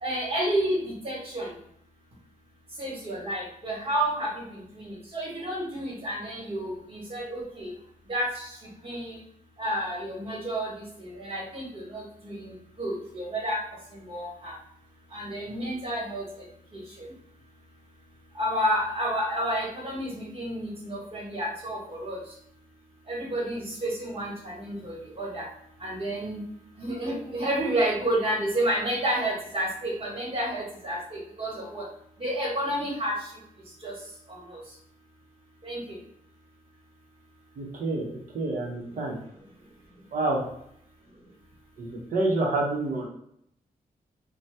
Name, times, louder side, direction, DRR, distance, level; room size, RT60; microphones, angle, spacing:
voice 1, 0.0-1.5 2.8-7.7 8.1-8.5 8.8-9.2 9.6-13.6 13.9-14.5 15.1-16.2 16.7-17.1 18.3-22.2 23.1-25.4 25.8-26.4 26.8-31.8 32.2-33.3 33.8-33.9 34.3-34.6 35.6-35.8, right 1 dB, 40° right, -4 dB, 1.3 m, -30 dB
voice 2, 37.6-38.1 38.3-39.2 40.1-40.4 41.8-43.1, right 2 dB, 65° right, -1 dB, 0.8 m, -28 dB
2.8 x 2.2 x 3.3 m, 0.71 s
wide cardioid pair, 135°, 15 cm